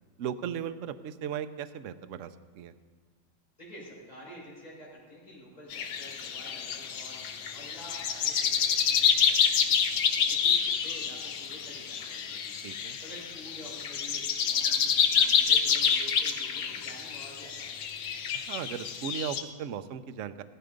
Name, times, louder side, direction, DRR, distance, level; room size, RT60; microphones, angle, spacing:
voice 1, 0.2-2.7 12.6-13.0 18.5-20.4, right 8 dB, 65° right, 10 dB, 0.8 m, -37 dB
voice 2, 3.6-12.5 13.0-14.2 14.5-18.0, equal, 20° left, -6 dB, 6.1 m, -49 dB
sound 1, 5.7-19.4, left 7 dB, 85° left, 1.7 m, -28 dB
15.5 x 13.0 x 5.2 m, 1.5 s
omnidirectional pair, 2.0 m